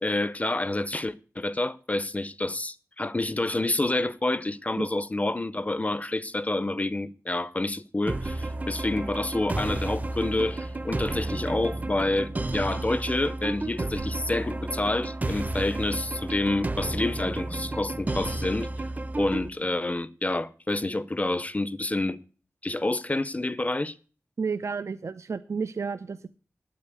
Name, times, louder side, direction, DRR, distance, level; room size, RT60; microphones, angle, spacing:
voice 1, 0.0-18.7 19.2-22.2 22.6-24.0, left 2 dB, 25° left, 0.6 m, -28 dB
sound 1, 8.1-19.5, right 2 dB, 30° right, 0.7 m, -32 dB
voice 2, 24.4-26.3, right 5 dB, 65° right, 0.5 m, -31 dB
9.0 x 8.7 x 8.2 m
wide cardioid pair, 90°, 5 cm